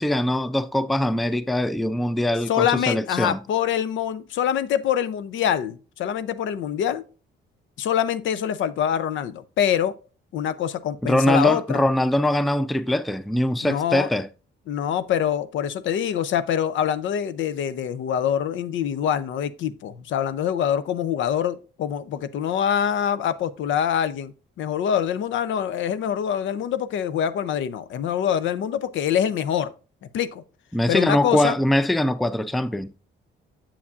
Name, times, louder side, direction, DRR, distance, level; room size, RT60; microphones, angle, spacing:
voice 1, 0.0-3.4 11.0-14.3 30.7-32.9, left 1 dB, ahead, 0.3 m, -22 dB
voice 2, 2.5-7.0 7.8-9.9 10.3-11.8 13.6-14.1 14.7-24.3 24.6-29.7 30.0-30.4 30.9-31.5, left 9 dB, 75° left, 0.6 m, -25 dB
7.2 x 7.1 x 2.5 m
cardioid pair, 90°, 20 cm